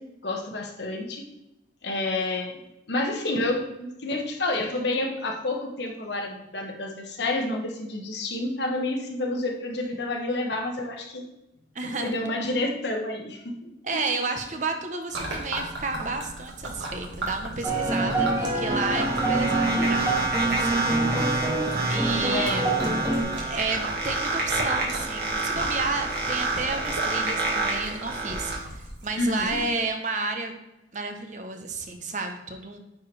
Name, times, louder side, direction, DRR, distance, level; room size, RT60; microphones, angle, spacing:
voice 1, 0.2-1.3 1.8-2.6 2.9-11.2 12.0-14.0 22.3-22.6 29.1-29.6, left 2 dB, 70° left, 2 dB, 1.2 m, -29 dB
voice 2, 11.7-12.1 13.8-21.4 21.9-22.7 23.5-30.5 30.9-32.8, right 3 dB, 40° right, 5 dB, 0.8 m, -31 dB
Gurgling / Liquid, 15.1-29.7, right 2 dB, 80° right, 1.8 m, -37 dB
sound 1, 17.6-23.2, right 2 dB, 15° right, 1.5 m, -26 dB
sound 2, 18.2-28.6, right 3 dB, 60° right, 1.9 m, -29 dB
9.3 x 4.5 x 3.3 m, 0.92 s
head